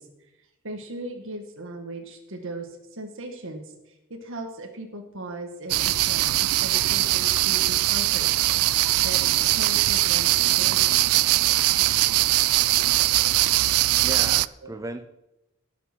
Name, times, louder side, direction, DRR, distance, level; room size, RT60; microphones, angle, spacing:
voice 1, 0.0-8.7 9.0-9.2 9.5-11.0 14.6-14.7, right 1 dB, 65° right, 3 dB, 1.7 m, -38 dB
sound 1, 5.7-14.5, right 17 dB, 85° right, 0.4 m, -21 dB
voice 2, 14.0-15.1, right 2 dB, 15° right, 9 dB, 0.5 m, -35 dB
18.0 x 6.8 x 6.1 m, 0.94 s
head